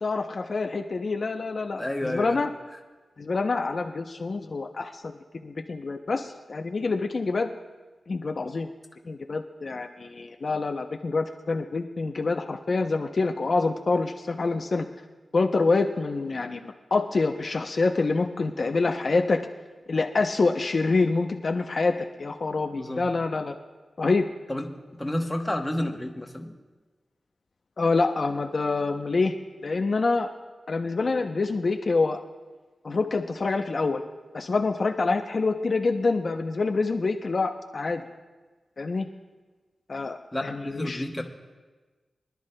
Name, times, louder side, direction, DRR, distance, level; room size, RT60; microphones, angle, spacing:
voice 1, 0.0-2.5 3.2-5.1 5.4-7.5 8.1-8.7 9.1-14.9 15.3-19.4 19.9-23.6 24.0-24.3 27.8-29.3 29.6-30.3 30.7-32.2 32.8-34.0 34.3-38.0 38.8-39.1 39.9-41.2, left 3 dB, 50° left, 3 dB, 0.6 m, -26 dB
voice 2, 1.8-2.4 22.7-23.0 24.5-26.5 40.3-41.2, left 1 dB, 10° left, 2 dB, 1.1 m, -30 dB
24.0 x 11.5 x 2.2 m, 1.3 s
wide cardioid pair, 120°, 0 cm